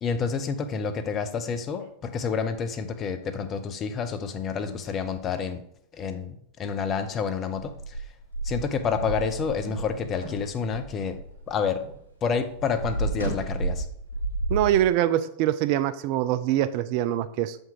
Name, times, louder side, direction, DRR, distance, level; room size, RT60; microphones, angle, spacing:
voice 1, 0.0-5.6 5.9-8.0 8.4-11.2 11.5-11.8 12.2-13.9, left 6 dB, 30° left, 9 dB, 0.7 m, -29 dB
sound 1, 7.6-12.0 12.2-14.8, right 2 dB, 80° right, 2.6 m, -32 dB
voice 2, 14.5-17.6, right 12 dB, 45° right, 13 dB, 0.4 m, -24 dB
7.2 x 5.2 x 3.8 m, 0.69 s
figure-of-eight pair, 90°, 0 cm